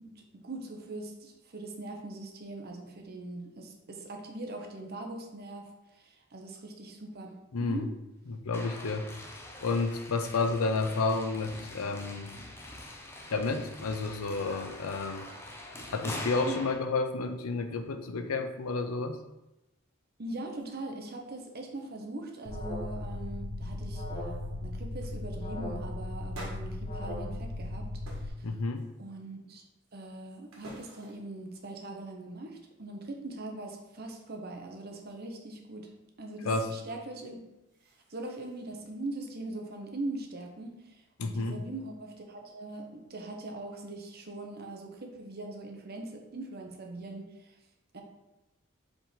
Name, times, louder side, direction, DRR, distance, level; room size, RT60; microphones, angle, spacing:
voice 1, 0.0-7.9 16.4-16.6 20.2-27.9 28.2-28.5 29.0-29.6 29.9-35.9 36.2-37.4 38.1-47.6 47.9-48.0, right 2 dB, 50° right, 3 dB, 0.9 m, -41 dB
voice 2, 7.5-7.9 8.3-9.1 9.6-12.3 13.3-15.3 15.9-19.2 28.4-28.9 36.4-36.7 41.2-41.6, left 3 dB, 85° left, 8 dB, 0.6 m, -31 dB
sound 1, 8.5-16.8, left 1 dB, 10° left, 0.6 m, -44 dB
sound 2, 20.6-20.7 21.0-21.8 22.1-22.5 22.8-23.3 23.9-24.0 24.3-24.5 25.0-25.2 26.3-27.7 28.0-28.4 28.7-29.2 29.8-31.4 37.4-38.8, right 1 dB, 70° right, 1.8 m, -51 dB
Alarm, 22.4-28.3, left 1 dB, 30° left, 1.1 m, -37 dB
5.1 x 3.7 x 5.0 m, 0.97 s
head